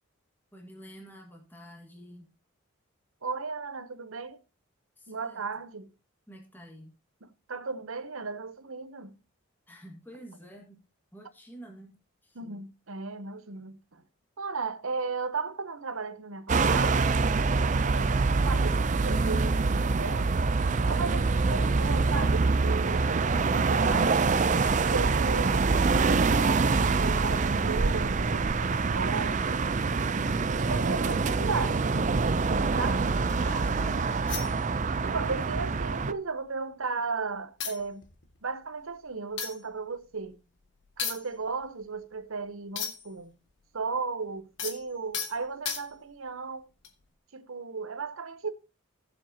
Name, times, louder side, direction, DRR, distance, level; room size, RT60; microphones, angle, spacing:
voice 1, 0.5-2.3 5.0-5.4 6.3-6.9 9.7-10.8 11.1-12.0 12.2-12.6 33.4-34.3 35.1-35.5, equal, 10° left, 1.8 m, -48 dB
voice 2, 3.2-4.4 5.1-5.9 7.2-9.1 12.4-14.0 14.4-17.1 17.9-20.3 20.9-24.2 24.9-25.7 25.9-29.7 30.6-33.1 35.0-38.0 38.4-40.4 41.0-43.4 43.7-46.6 47.3-48.5, right 4 dB, 75° right, 0.9 m, -35 dB
sound 1, 16.5-36.1, right 4 dB, 35° right, 0.5 m, -25 dB
sound 2, 31.7-33.6 34.3-35.1 35.4-35.6 36.0-36.9 37.2-37.3 37.6-43.2 43.5-46.2 46.8-47.1, left 7 dB, 55° left, 1.7 m, -39 dB
16.5 x 7.5 x 2.9 m
head